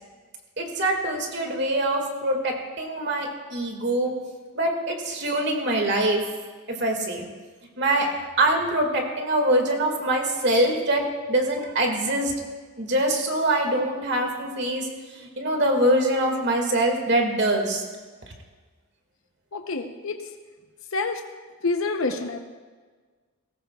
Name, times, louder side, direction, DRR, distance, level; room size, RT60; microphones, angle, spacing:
voice 1, 0.6-4.2 4.6-6.2 6.7-7.3 7.8-12.3 12.8-14.9 15.1-17.8, right 1 dB, 50° right, 2 dB, 2.0 m, -24 dB
voice 2, 19.5-20.2 20.9-21.2 21.6-22.4, left 3 dB, 70° left, 5 dB, 0.8 m, -27 dB
19.0 x 16.0 x 2.4 m, 1.5 s
head